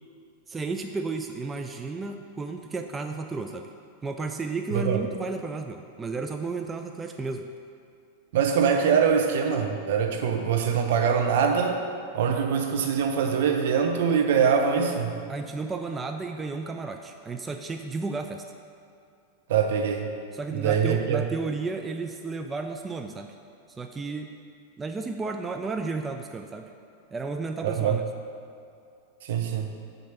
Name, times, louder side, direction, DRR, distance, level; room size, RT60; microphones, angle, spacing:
voice 1, 0.5-3.7 4.0-7.5 15.3-18.4 20.3-23.3 23.8-24.3 24.8-26.7 27.1-28.0, right 3 dB, 20° right, 5 dB, 0.3 m, -33 dB
voice 2, 8.3-11.8 12.1-15.1 19.5-20.1 20.5-21.2 27.6-28.0 29.2-29.7, right 7 dB, 65° right, 3 dB, 0.7 m, -23 dB
7.3 x 2.7 x 5.9 m, 2.5 s
hypercardioid pair, 95°, 0 cm